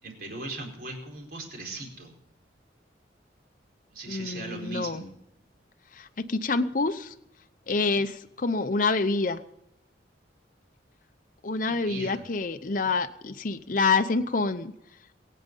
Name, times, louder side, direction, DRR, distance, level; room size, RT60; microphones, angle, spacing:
voice 1, 0.0-2.2 3.9-5.1 11.5-12.2, right 2 dB, 55° right, 1 dB, 4.6 m, -39 dB
voice 2, 4.1-5.0 5.9-7.1 7.7-9.4 11.4-14.7, left 3 dB, 45° left, 8 dB, 0.7 m, -27 dB
22.0 x 9.5 x 5.4 m, 0.81 s
head